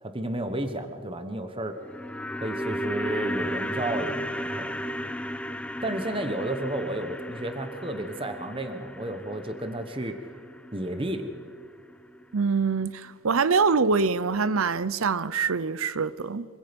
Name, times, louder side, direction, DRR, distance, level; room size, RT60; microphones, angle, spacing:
voice 1, 0.0-1.8 2.4-4.8 5.8-10.2 10.7-11.4, right 1 dB, 25° right, 1.2 m, -32 dB
sound 1, 1.7-11.9 12.2-12.3, equal, 5° left, 0.6 m, -35 dB
voice 2, 12.3-16.5, right 5 dB, 70° right, 0.7 m, -24 dB
26.0 x 24.5 x 5.3 m
head